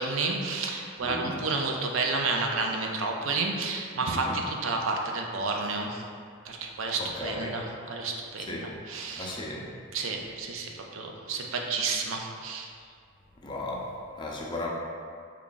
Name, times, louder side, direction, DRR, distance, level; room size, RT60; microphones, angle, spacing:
voice 1, 0.0-6.0 6.5-9.4 9.9-12.7, right 3 dB, 65° right, 2 dB, 0.4 m, -31 dB
voice 2, 1.0-1.4 4.1-4.4 7.0-7.5 8.5-8.7 9.2-9.7 13.4-13.9 14.2-14.7, left 2 dB, 20° left, -2 dB, 0.4 m, -35 dB
3.5 x 2.3 x 3.8 m, 2.2 s
head